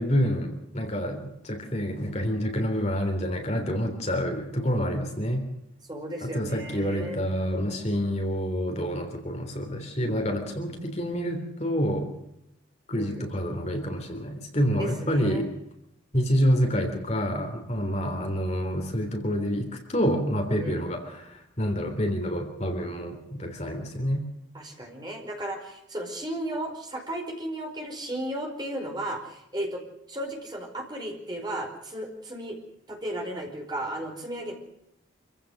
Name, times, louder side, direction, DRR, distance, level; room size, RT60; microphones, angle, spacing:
voice 1, 0.0-5.4 6.2-12.1 12.9-15.5 16.1-24.3, equal, 35° left, 3 dB, 3.4 m, -28 dB
voice 2, 5.9-7.2 12.9-13.3 14.8-15.5 20.6-20.9 24.5-29.8 30.1-32.6 32.9-34.5, right 1 dB, 20° right, 1 dB, 5.0 m, -34 dB
27.0 x 16.0 x 6.6 m, 0.82 s
head